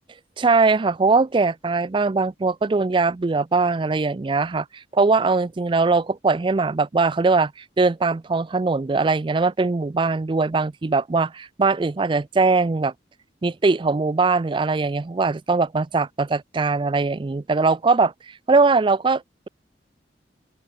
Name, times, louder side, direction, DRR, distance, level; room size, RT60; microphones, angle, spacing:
voice 1, 0.4-7.5 7.8-12.9 13.4-18.1 18.5-19.5, right 3 dB, 25° right, 0.4 m, -21 dB
open air
head